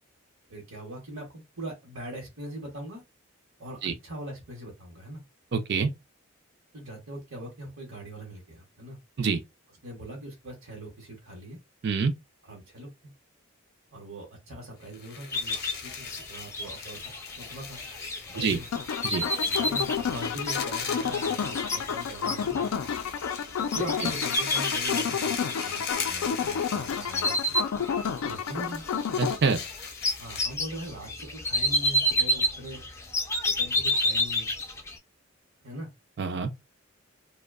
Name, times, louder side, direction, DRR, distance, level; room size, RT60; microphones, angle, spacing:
voice 1, 0.5-3.0 3.6-5.2 6.7-9.0 9.8-11.6 12.4-12.9 13.9-17.8 18.3-18.7 19.4-22.8 23.7-27.6 28.2-28.8 30.2-32.8 33.4-34.5 35.6-35.9, right 1 dB, 70° right, 0.9 m, -41 dB
voice 2, 5.5-5.9 9.2-9.4 11.8-12.1 18.4-18.6 19.0-19.3 29.2-29.6 36.2-36.5, right 5 dB, 50° right, 0.4 m, -26 dB
sound 1, 14.9-30.6, left 6 dB, 45° left, 0.6 m, -39 dB
sound 2, 15.3-26.6 26.9-28.4 28.7-35.0, left 1 dB, 15° left, 0.3 m, -30 dB
sound 3, 18.7-29.4, left 7 dB, 85° left, 0.3 m, -30 dB
2.6 x 2.1 x 2.3 m
head